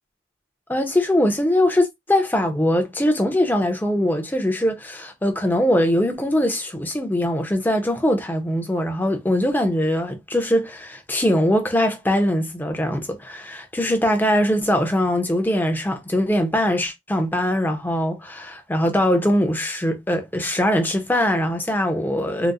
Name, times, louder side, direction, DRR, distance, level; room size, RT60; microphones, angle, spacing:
voice 1, 0.7-22.5, left 1 dB, 10° left, 0.5 m, -21 dB
3.9 x 2.0 x 2.4 m
head